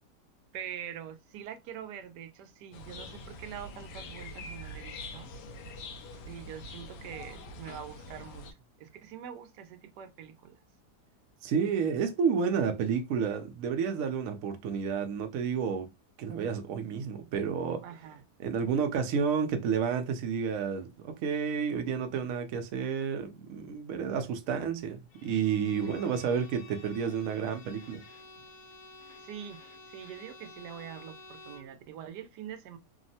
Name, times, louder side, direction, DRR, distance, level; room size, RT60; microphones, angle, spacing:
voice 1, 0.5-5.3 6.1-10.6 17.8-18.2 25.8-26.0 29.2-29.6 29.9-32.8, right 9 dB, 85° right, 1.2 m, -44 dB
sound 1, 2.7-8.5, left 1 dB, 90° left, 1.2 m, -44 dB
voice 2, 11.4-15.9 16.2-17.8 18.4-28.0, right 6 dB, 70° right, 0.9 m, -30 dB
Bowed string instrument, 25.1-31.8, left 3 dB, 55° left, 1.0 m, -51 dB
3.4 x 2.0 x 2.6 m
omnidirectional pair, 1.8 m